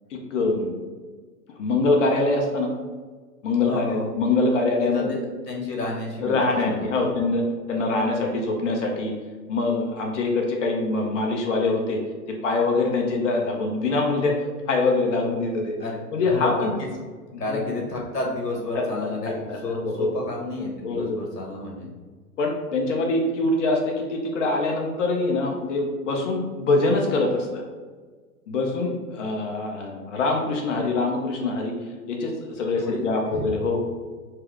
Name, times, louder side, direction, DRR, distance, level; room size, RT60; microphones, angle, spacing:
voice 1, 0.1-0.7 1.6-2.7 3.4-5.2 6.2-9.1 9.5-12.0 12.3-14.4 14.7-15.8 16.1-16.7 17.5-17.8 18.7-20.1 20.8-21.2 22.4-27.6 28.5-31.7 32.1-33.8, left 3 dB, 50° left, 1 dB, 0.8 m, -24 dB
voice 2, 3.7-4.1 4.8-5.2 5.5-7.1 15.8-16.0 16.3-16.7 17.4-21.9 32.7-33.0 33.3-33.5, left 2 dB, 85° left, -1 dB, 1.5 m, -31 dB
4.6 x 2.0 x 4.6 m, 1.4 s
hypercardioid pair, 125°, 47 cm